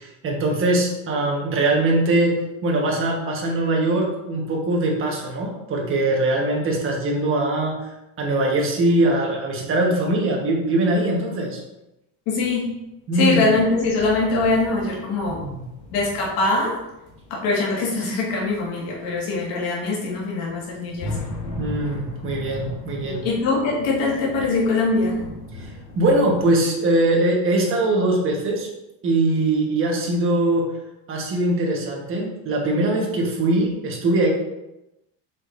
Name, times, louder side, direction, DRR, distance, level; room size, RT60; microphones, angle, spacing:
voice 1, 0.0-7.7 8.2-11.6 13.1-13.4 15.3-15.6 21.6-23.2 25.6-25.7 25.9-28.7 29.0-30.7 31.1-34.3, right 2 dB, 30° right, -1 dB, 1.3 m, -21 dB
voice 2, 12.3-12.7 13.1-15.4 15.9-16.8 17.3-21.1 23.0-25.3, left 3 dB, 75° left, -3 dB, 1.9 m, -22 dB
sound 1, 12.4-12.8 13.5-26.6, left 2 dB, 40° left, 1.5 m, -38 dB
7.2 x 5.2 x 2.6 m, 0.93 s
cardioid pair, 165°, 44 cm